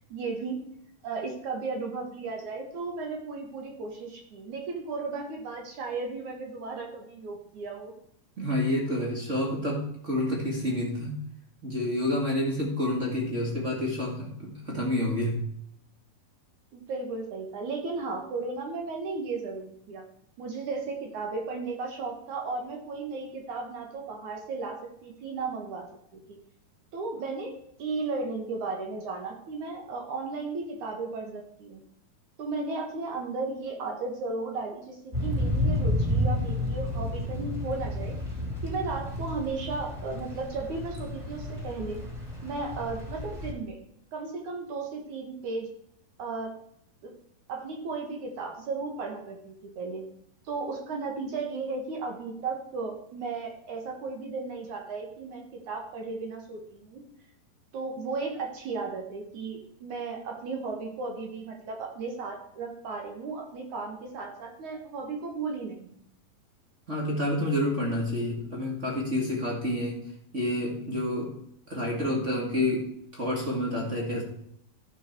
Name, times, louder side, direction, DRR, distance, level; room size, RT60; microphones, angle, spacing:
voice 1, 0.1-0.6 1.0-7.9 16.7-20.0 20.4-25.9 26.3-26.4 26.9-31.8 32.4-38.1 38.6-42.0 42.4-43.8 44.1-45.7 46.2-46.5 47.0-47.1 47.5-50.0 50.4-57.0 57.7-65.9, right 3 dB, 55° right, 2 dB, 2.6 m, -35 dB
voice 2, 8.4-11.2 11.6-15.4 66.9-70.1 70.3-71.3 71.7-72.8 73.1-74.2, left 1 dB, 30° right, -2 dB, 1.3 m, -29 dB
Thunder / Rain, 35.1-43.5, left 1 dB, 10° right, 2.8 m, -31 dB
13.0 x 6.1 x 4.5 m, 0.70 s
omnidirectional pair, 4.6 m